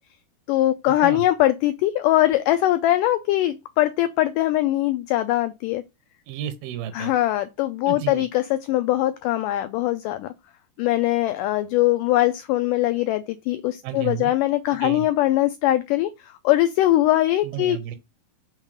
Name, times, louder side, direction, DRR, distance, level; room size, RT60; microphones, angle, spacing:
voice 1, 0.5-5.8 7.0-10.3 10.8-17.8, left 15 dB, 85° left, 1.9 m, -21 dB
voice 2, 6.3-7.1 7.8-8.3 13.8-14.3 14.8-15.0 17.4-18.0, right 11 dB, 85° right, 2.7 m, -32 dB
6.2 x 3.8 x 4.9 m
omnidirectional pair, 4.3 m